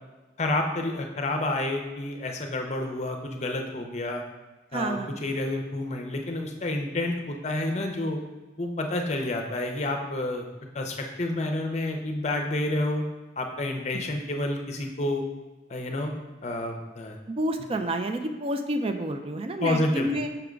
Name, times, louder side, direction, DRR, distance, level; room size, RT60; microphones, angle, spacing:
voice 1, 0.4-4.2 4.7-8.2 8.6-10.5 10.7-13.0 13.4-15.2 15.7-16.1 16.4-17.2 19.6-20.1, left 1 dB, 35° left, 3 dB, 0.6 m, -29 dB
voice 2, 4.7-5.2 17.3-20.3, right 1 dB, 30° right, 7 dB, 0.4 m, -29 dB
5.8 x 3.5 x 5.1 m, 1.2 s
head